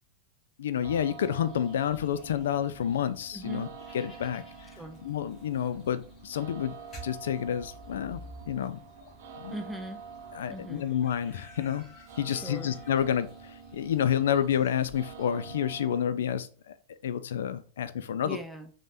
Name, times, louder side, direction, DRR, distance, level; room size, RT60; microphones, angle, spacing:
voice 1, 0.6-3.7 3.9-4.4 5.0-6.7 7.0-8.8 9.4-9.5 10.3-11.9 12.2-16.8 17.0-18.4, left 9 dB, 85° left, 13 dB, 0.3 m, -29 dB
sound 1, 0.8-15.2, equal, 25° left, 1.0 m, -52 dB
sound 2, 0.8-16.0, right 6 dB, 70° right, 0.4 m, -48 dB
voice 2, 3.3-3.7 4.7-5.0 9.5-10.0 10.5-10.8 12.3-12.8 18.2-18.7, equal, ahead, 5 dB, 0.3 m, -40 dB
3.3 x 2.2 x 2.6 m, 0.39 s
supercardioid pair, 140°, 0 cm